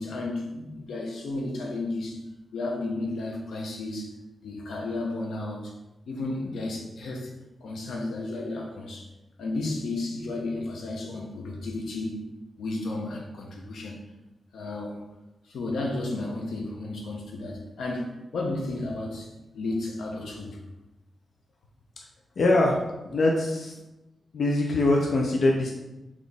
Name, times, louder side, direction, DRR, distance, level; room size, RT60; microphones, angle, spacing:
voice 1, 0.0-2.2 2.5-4.1 4.4-5.7 6.1-7.3 7.6-9.1 9.4-12.3 12.6-14.0 14.5-15.0 15.4-20.6, left 2 dB, 90° left, 0 dB, 0.8 m, -33 dB
voice 2, 22.4-22.8 23.0-23.7 24.3-25.7, left 2 dB, 60° left, -1 dB, 0.5 m, -23 dB
4.0 x 3.1 x 3.5 m, 1.0 s
wide cardioid pair, 115°, 0 cm